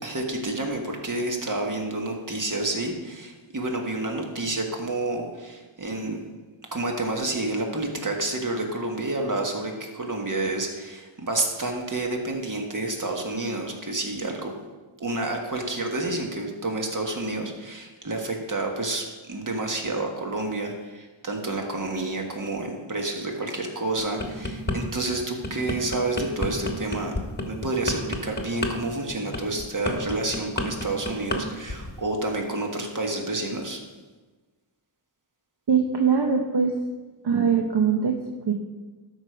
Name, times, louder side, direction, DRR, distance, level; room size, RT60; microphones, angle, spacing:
voice 1, 0.0-6.2 6.7-14.5 15.0-27.1 27.5-33.8, right 2 dB, 40° right, 2 dB, 1.5 m, -29 dB
sound 1, 24.0-24.8 25.2-31.4 31.7-32.0, left 2 dB, 20° left, 1.2 m, -29 dB
voice 2, 35.7-36.7 37.2-38.1 38.5-38.6, right 6 dB, 55° right, 2 dB, 0.9 m, -21 dB
12.5 x 5.0 x 5.0 m, 1.3 s
wide cardioid pair, 95°, 47 cm